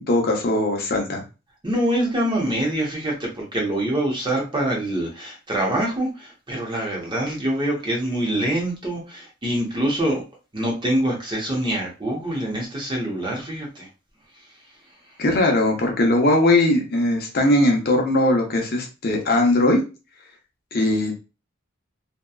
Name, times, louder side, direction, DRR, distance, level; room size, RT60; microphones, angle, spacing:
voice 1, 0.1-1.2 15.2-19.8 20.7-21.1, left 1 dB, 50° left, 2 dB, 0.7 m, -19 dB
voice 2, 1.6-10.2 10.5-13.9, right 1 dB, 25° right, -1 dB, 0.8 m, -25 dB
2.7 x 2.2 x 2.3 m, 0.31 s
head